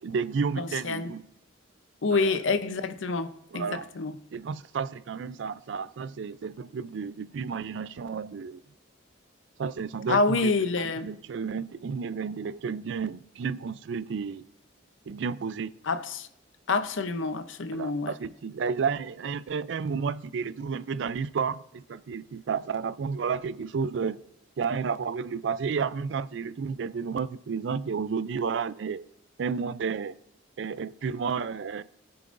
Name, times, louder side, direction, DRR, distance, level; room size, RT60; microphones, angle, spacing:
voice 1, 0.0-1.3 2.1-2.4 3.5-3.9 4.3-8.6 9.6-14.5 15.1-15.8 17.7-24.2 24.6-29.1 29.4-30.1 30.6-31.8, right 5 dB, 65° right, 0.4 m, -31 dB
voice 2, 0.6-1.1 2.0-4.1 10.1-11.1 15.8-16.3 16.7-18.1, left 3 dB, 80° left, 0.6 m, -27 dB
19.5 x 6.8 x 2.6 m
head